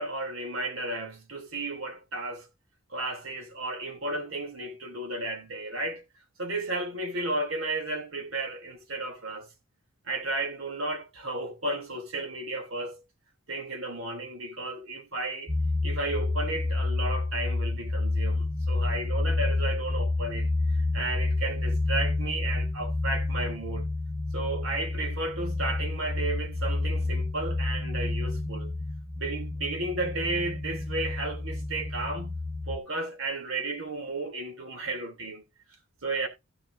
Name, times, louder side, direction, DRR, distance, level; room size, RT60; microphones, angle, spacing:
voice 1, 0.0-2.5 2.9-6.0 6.4-9.5 10.1-13.0 13.5-15.5 15.8-20.5 20.9-23.9 24.3-28.7 29.2-32.4 32.7-35.4 36.0-36.3, right 2 dB, 75° right, 3.1 m, -33 dB
sound 1, 15.5-32.8, left 2 dB, 30° right, 2.6 m, -29 dB
16.0 x 7.3 x 2.6 m
head